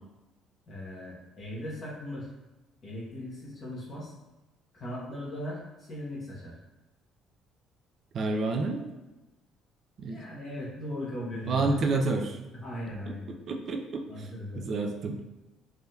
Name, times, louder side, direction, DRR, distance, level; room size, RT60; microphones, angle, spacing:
voice 1, 0.7-2.3 2.8-4.1 4.7-6.6 10.1-11.9 12.6-13.3 14.1-14.6, left 1 dB, 35° left, -6 dB, 0.9 m, -38 dB
voice 2, 8.1-8.8 10.0-10.2 11.5-12.3 13.1-13.2 13.5-14.1 14.6-15.2, right 3 dB, 45° right, 3 dB, 0.3 m, -29 dB
3.4 x 2.7 x 2.2 m, 1.1 s
cardioid pair, 135°, 0 cm